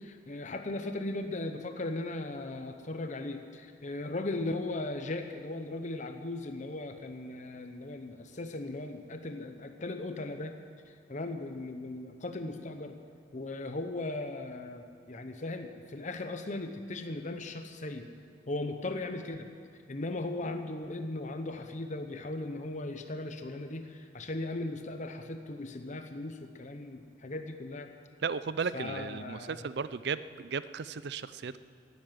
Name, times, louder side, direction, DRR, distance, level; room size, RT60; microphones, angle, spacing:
voice 1, 0.0-10.6 11.1-13.0 13.3-18.1 18.5-19.5 19.9-27.9 28.7-29.6, left 2 dB, 40° left, 6 dB, 0.8 m, -37 dB
voice 2, 28.2-31.6, right 5 dB, 65° right, 15 dB, 0.5 m, -35 dB
12.5 x 11.0 x 9.3 m, 2.3 s
head